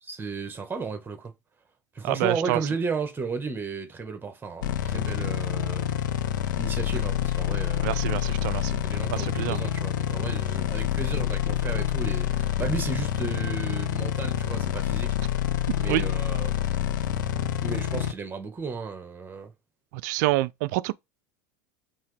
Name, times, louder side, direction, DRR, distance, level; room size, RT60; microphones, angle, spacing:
voice 1, 0.0-1.3 1.9-5.9 6.6-8.0 8.8-15.4 15.8-16.5 17.6-19.5, right 4 dB, 20° right, 1.4 m, -34 dB
voice 2, 2.0-2.6 7.8-8.8 9.1-9.6 15.9-16.1 20.0-20.9, right 18 dB, 65° right, 0.4 m, -27 dB
sound 1, 4.6-18.1, left 11 dB, 80° left, 0.6 m, -27 dB
5.5 x 2.8 x 3.3 m
hypercardioid pair, 85°, 10 cm